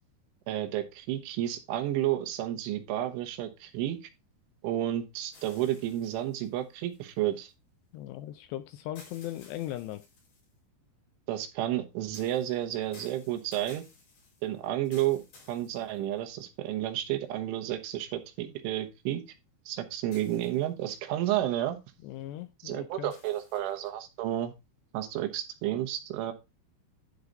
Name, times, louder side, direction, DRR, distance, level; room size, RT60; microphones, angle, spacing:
voice 1, 0.5-4.0 4.6-7.5 11.3-13.8 14.4-15.2 15.5-19.2 19.7-21.8 22.6-24.5 24.9-26.3, right 13 dB, 85° right, 6 dB, 3.6 m, -31 dB
sound 1, 5.3-7.5 9.0-10.6 12.1-16.4 17.0-17.1 20.1-20.9 23.1-23.9, left 4 dB, 55° left, 6.1 m, -56 dB
voice 2, 7.9-10.0 22.0-23.1, left 13 dB, 80° left, 11 dB, 2.5 m, -38 dB
11.5 x 4.8 x 3.9 m, 0.24 s
omnidirectional pair, 5.4 m